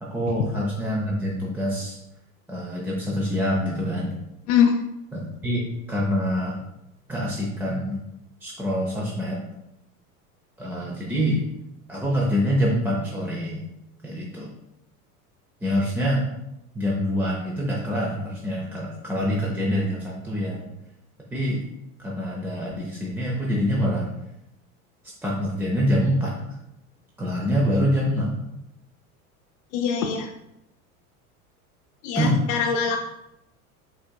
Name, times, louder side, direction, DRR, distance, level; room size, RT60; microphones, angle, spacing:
voice 1, 0.0-2.0 2.5-4.1 5.1-6.6 7.1-8.0 8.4-9.4 10.6-11.4 11.9-13.6 14.0-14.5 15.6-16.3 16.7-20.7 21.3-21.6 22.0-24.1 25.2-26.4 27.2-28.3 32.2-32.4, equal, 5° right, -4 dB, 0.6 m, -25 dB
voice 2, 29.7-30.3 32.0-33.0, left 7 dB, 50° left, 2 dB, 0.5 m, -22 dB
5.6 x 3.5 x 2.3 m, 0.86 s
hypercardioid pair, 85°, 45 cm